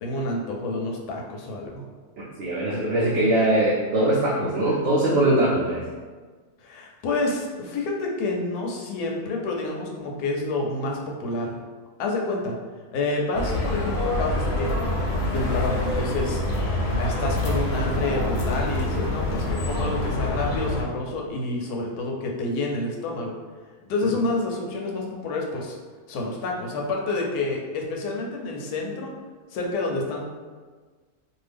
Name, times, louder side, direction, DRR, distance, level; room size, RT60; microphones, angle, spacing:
voice 1, 0.0-1.9 6.6-11.6 12.0-12.6 12.9-16.4 16.9-23.3 23.9-25.8 26.1-29.1 29.5-30.2, left 2 dB, 85° left, 0 dB, 1.1 m, -28 dB
voice 2, 2.4-5.8, right 1 dB, 85° right, -5 dB, 0.5 m, -21 dB
sound 1, 13.3-20.8, left 1 dB, 65° left, 0.8 m, -26 dB
2.7 x 2.4 x 3.3 m, 1.4 s
omnidirectional pair, 1.6 m